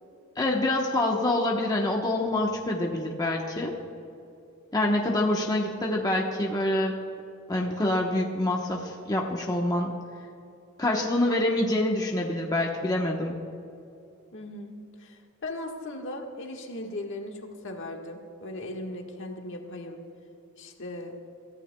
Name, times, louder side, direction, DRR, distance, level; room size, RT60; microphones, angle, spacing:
voice 1, 0.4-3.7 4.7-7.0 7.5-9.9 10.8-13.3, left 1 dB, 20° left, -1 dB, 1.0 m, -26 dB
voice 2, 14.3-20.0 20.6-21.2, left 1 dB, 60° left, 2 dB, 1.5 m, -38 dB
27.0 x 14.5 x 2.2 m, 2.6 s
head